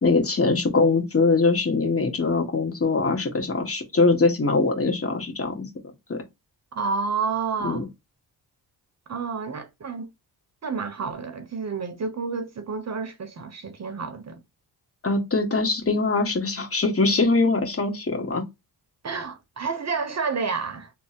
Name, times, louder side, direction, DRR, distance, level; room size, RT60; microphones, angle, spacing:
voice 1, 0.0-5.7 6.1-6.2 7.6-7.8 15.0-18.4, left 3 dB, 35° left, 1.5 m, -22 dB
voice 2, 6.7-7.8 9.1-10.1 10.6-14.4 19.0-20.9, right 5 dB, 40° right, 0.8 m, -30 dB
3.3 x 2.1 x 4.2 m
cardioid pair, 80°, 41 cm